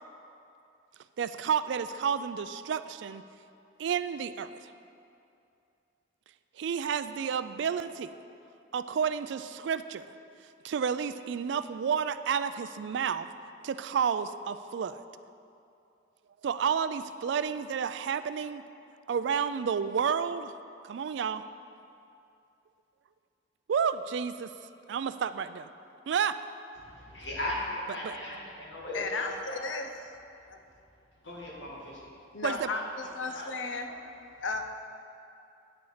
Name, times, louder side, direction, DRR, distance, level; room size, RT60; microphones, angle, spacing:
voice 1, 1.2-3.2 3.8-4.7 6.6-8.1 8.7-10.0 10.6-13.3 13.6-15.0 16.4-18.6 19.1-20.6 20.8-21.4 23.7-24.5 24.9-25.7 26.1-26.4 28.0-28.2 32.4-32.7, right 7 dB, 65° right, 13 dB, 0.3 m, -30 dB
voice 2, 26.8-29.6 31.2-32.0 32.5-33.5, left 1 dB, 65° left, -4 dB, 2.1 m, -38 dB
voice 3, 28.9-30.1 30.5-30.6 32.3-33.9 34.4-34.7, left 3 dB, 80° left, 6 dB, 0.7 m, -35 dB
9.5 x 7.0 x 4.9 m, 2.6 s
head